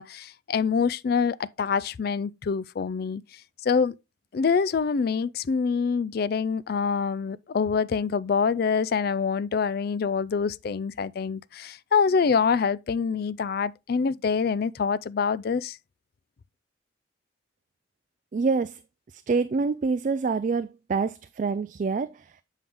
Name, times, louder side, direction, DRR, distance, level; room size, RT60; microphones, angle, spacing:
voice 1, 0.0-3.2 3.6-3.9 4.3-15.8, left 5 dB, 50° left, 0.3 m, -25 dB
voice 2, 18.3-18.8 19.3-22.1, right 4 dB, 40° right, 0.3 m, -26 dB
7.6 x 5.5 x 3.5 m
head